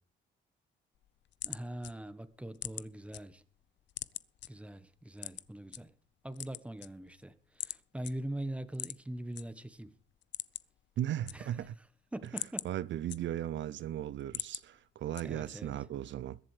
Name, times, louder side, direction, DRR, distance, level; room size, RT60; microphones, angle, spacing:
sound 1, 1.0-3.2 3.6-4.5 5.2-5.8 6.3-7.2 7.6-7.8 8.0-8.1 8.7-9.4 9.8-9.9 10.2-10.8 11.1-11.8 12.1-13.6 14.0-14.6 15.1-15.6, left 12 dB, 65° left, 0.7 m, -42 dB
voice 1, 1.4-3.4 4.5-5.9 6.2-9.9 11.3-11.5 12.1-12.7 15.2-15.7, right 1 dB, 5° right, 1.4 m, -42 dB
voice 2, 11.0-11.8 12.6-16.4, right 12 dB, 70° right, 0.7 m, -36 dB
21.5 x 7.6 x 5.1 m
cardioid pair, 90°, 20 cm